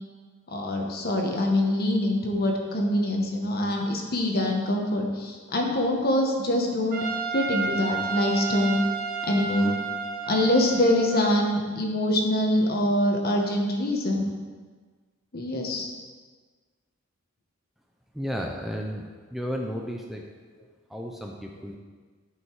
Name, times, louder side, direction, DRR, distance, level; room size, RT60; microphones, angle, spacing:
voice 1, 0.5-7.0 7.3-8.8 9.3-9.7 10.3-14.3 15.3-15.9, left 1 dB, 50° left, 1 dB, 1.3 m, -24 dB
Trumpet, 6.9-11.5, right 5 dB, 45° right, 1.2 m, -31 dB
voice 2, 18.1-19.0 19.3-20.3 20.9-21.8, equal, ahead, 0 dB, 0.5 m, -33 dB
11.0 x 5.4 x 4.7 m, 1.5 s
head